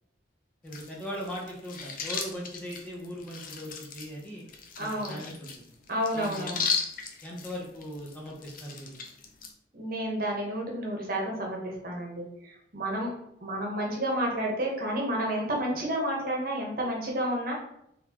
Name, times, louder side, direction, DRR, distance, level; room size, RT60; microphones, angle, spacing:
voice 1, 0.6-4.5 4.8-5.6 6.1-6.6 7.2-9.0, equal, 10° left, -4 dB, 0.7 m, -39 dB
sound 1, 0.7-9.5, left 5 dB, 45° left, 0.5 m, -37 dB
voice 2, 4.8-5.2 5.9-6.6 9.7-13.1 13.4-17.5, right 1 dB, 50° right, -1 dB, 1.0 m, -30 dB
4.0 x 3.4 x 2.9 m, 0.76 s
head